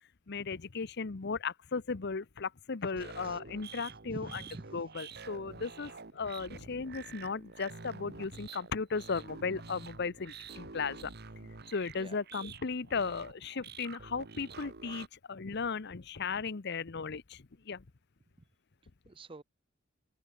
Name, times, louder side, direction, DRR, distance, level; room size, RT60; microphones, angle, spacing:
voice 1, 0.3-4.3 4.7-11.1 11.4-17.8, left 5 dB, 60° left, 0.8 m, -36 dB
sound 1, 2.9-15.1, right 4 dB, 55° right, 1.6 m, -48 dB
voice 2, 3.9-4.7 11.9-12.2 19.1-19.4, right 2 dB, 25° right, 0.6 m, -46 dB
open air
head